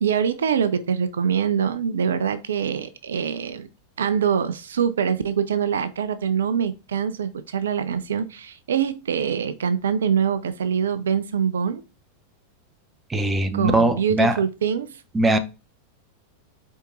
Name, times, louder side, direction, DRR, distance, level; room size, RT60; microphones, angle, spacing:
voice 1, 0.0-3.7 4.0-11.8 13.5-15.0, right 7 dB, 65° right, 0.4 m, -24 dB
voice 2, 13.1-14.4 15.1-15.4, right 1 dB, 15° right, 0.6 m, -20 dB
4.6 x 4.5 x 2.5 m
figure-of-eight pair, 90°, 0 cm